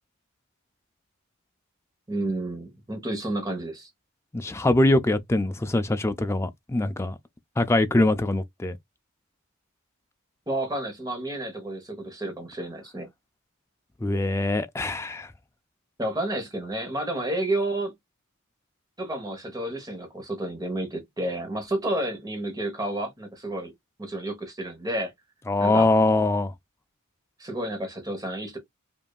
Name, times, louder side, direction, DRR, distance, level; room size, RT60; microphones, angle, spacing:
voice 1, 2.1-3.9 10.5-13.1 16.0-17.9 19.0-23.7 24.0-25.1 25.6-25.9 27.4-28.6, right 1 dB, 15° right, 1.1 m, -30 dB
voice 2, 4.3-7.2 7.6-8.8 14.0-15.3 25.5-26.5, left 2 dB, 10° left, 0.3 m, -23 dB
5.2 x 2.6 x 2.3 m
head